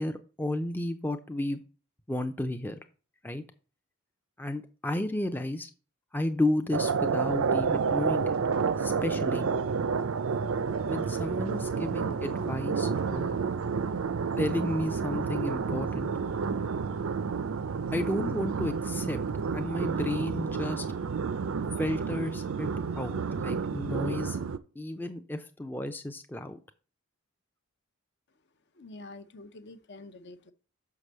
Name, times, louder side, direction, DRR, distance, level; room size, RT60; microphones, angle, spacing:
voice 1, 0.0-1.6 2.1-2.8 3.2-3.4 4.4-5.7 6.1-8.3 8.8-9.5 10.8-13.3 14.4-16.1 17.9-19.2 19.5-20.9 21.8-22.7 23.0-24.4 24.8-26.6, left 1 dB, 10° left, 0.5 m, -32 dB
sound 1, 6.7-24.6, right 5 dB, 65° right, 0.5 m, -30 dB
voice 2, 28.8-30.5, left 2 dB, 50° left, 0.7 m, -47 dB
6.0 x 4.8 x 6.6 m
head